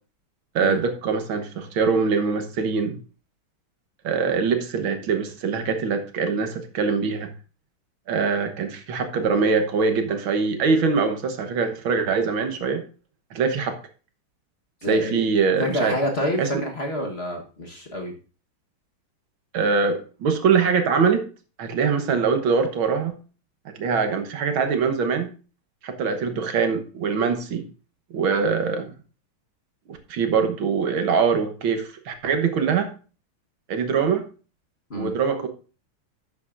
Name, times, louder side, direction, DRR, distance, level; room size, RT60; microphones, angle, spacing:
voice 1, 0.6-3.0 4.0-7.3 8.1-12.8 13.3-13.8 14.9-16.0 16.4-16.5 19.5-21.3 21.6-23.1 23.7-25.3 25.8-27.6 28.1-28.9 29.9-32.9 33.7-34.3 34.9-35.5, right 5 dB, 75° right, 7 dB, 1.9 m, -23 dB
voice 2, 14.8-15.2 15.6-18.1 34.9-35.1, equal, 35° left, 1 dB, 1.4 m, -28 dB
11.5 x 7.9 x 2.6 m, 0.36 s
omnidirectional pair, 2.3 m